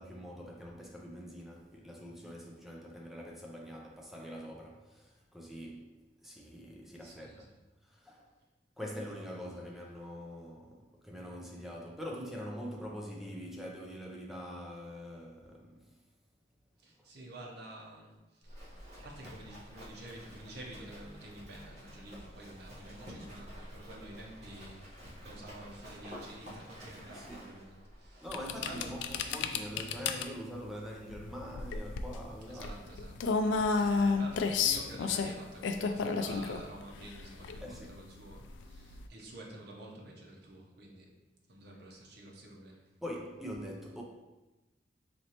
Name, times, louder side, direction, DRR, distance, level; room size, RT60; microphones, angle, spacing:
voice 1, 0.0-7.5 7.8-8.3 8.8-16.0 27.0-27.5 28.2-32.8 37.6-38.0 43.0-44.0, equal, ahead, 0.5 m, -44 dB
voice 2, 7.0-7.6 16.8-28.3 28.6-29.0 32.4-41.1 41.5-42.8, right 1 dB, 65° right, 0.8 m, -49 dB
Livestock farm animals working animals, 18.4-29.2, equal, 40° right, 1.2 m, -50 dB
sound 1, 28.3-39.1, left 4 dB, 80° left, 0.3 m, -32 dB
4.2 x 3.0 x 2.9 m
head